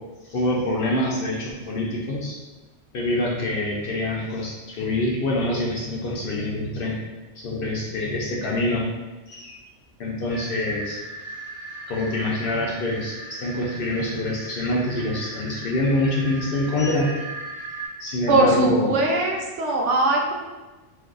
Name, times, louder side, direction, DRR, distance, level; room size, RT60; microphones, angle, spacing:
voice 1, 0.2-2.4 2.9-7.0 7.3-8.8 9.3-9.6 10.0-11.0 11.9-17.2 18.0-18.9, left 1 dB, 60° left, -3 dB, 0.6 m, -25 dB
sound 1, 10.3-17.9, right 2 dB, 50° right, 1.0 m, -38 dB
voice 2, 18.3-20.4, right 2 dB, 75° right, -1 dB, 0.9 m, -20 dB
2.6 x 2.3 x 3.6 m, 1.2 s
omnidirectional pair, 1.2 m